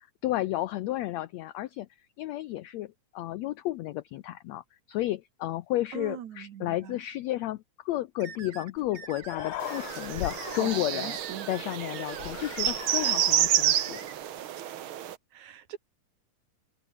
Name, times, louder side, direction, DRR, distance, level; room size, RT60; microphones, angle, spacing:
voice 1, 0.2-1.9 2.2-11.2 11.5-14.0, left 15 dB, 90° left, 1.5 m, -32 dB
voice 2, 5.9-7.0 10.0-11.5 13.0-13.2 15.3-15.8, right 10 dB, 60° right, 2.7 m, -42 dB
sound 1, 8.2-14.1, right 5 dB, 40° right, 3.6 m, -45 dB
Human voice, 8.8-8.9 9.1-11.2 12.1-13.8, left 13 dB, 65° left, 1.9 m, -39 dB
sound 2, 9.6-15.1, right 11 dB, 85° right, 1.1 m, -29 dB
omnidirectional pair, 3.9 m